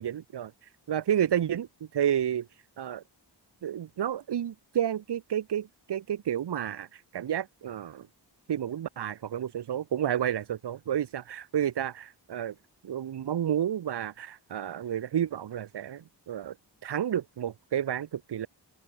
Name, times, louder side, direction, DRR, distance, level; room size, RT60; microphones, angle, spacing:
voice 1, 0.0-0.5 0.9-1.7 1.9-2.5 2.8-3.0 3.6-8.1 8.5-12.5 12.8-16.5 16.8-18.5, right 10 dB, 70° right, 0.7 m, -30 dB
open air
wide cardioid pair, 100°, 42 cm